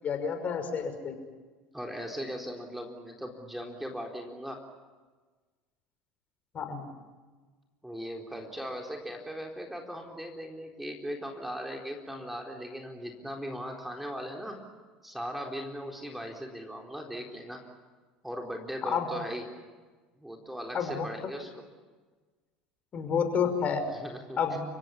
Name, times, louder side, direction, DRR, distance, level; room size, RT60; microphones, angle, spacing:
voice 1, 0.0-1.2 6.5-6.9 18.8-19.1 20.7-21.0 22.9-23.8 24.4-24.6, left 7 dB, 40° left, 7 dB, 5.8 m, -29 dB
voice 2, 1.7-4.6 7.8-14.6 15.0-17.6 18.2-19.4 20.2-21.6 23.9-24.4, equal, 5° right, 2 dB, 4.0 m, -38 dB
30.0 x 17.0 x 9.9 m, 1.3 s
hypercardioid pair, 80°, 4 cm